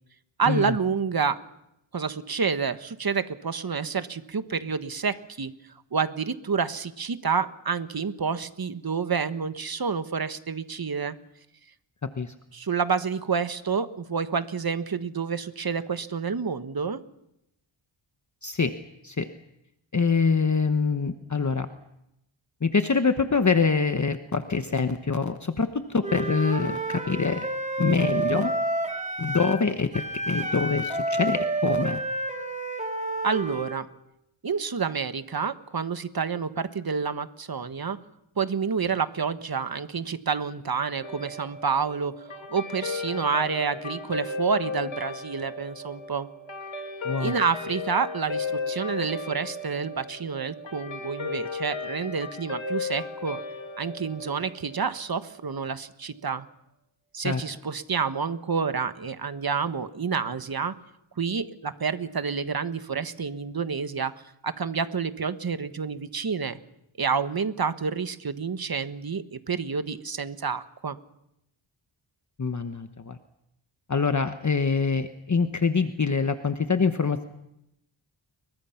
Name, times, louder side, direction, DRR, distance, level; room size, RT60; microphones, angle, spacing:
voice 1, 0.4-1.4 1.9-5.5 5.9-11.1 12.5-17.0 33.2-33.9 34.4-38.0 38.4-46.3 47.2-53.4 53.8-56.5 57.1-60.7 61.2-64.1 64.4-66.6 67.0-71.0, right 5 dB, 45° right, 11 dB, 1.4 m, -29 dB
voice 2, 18.4-18.7 19.0-19.3 19.9-21.7 22.6-27.5 27.8-28.5 29.2-32.0 47.0-47.3 57.2-57.4 72.4-73.2 73.9-77.2, left 5 dB, 35° left, 8 dB, 1.1 m, -25 dB
Wind instrument woodwind instrument, 26.0-29.6 29.9-33.8, right 2 dB, 15° right, 2.8 m, -29 dB
Guitar, 41.0-55.6, left 4 dB, 70° left, 2.5 m, -35 dB
29.5 x 23.0 x 5.9 m, 0.83 s
wide cardioid pair, 90°, 49 cm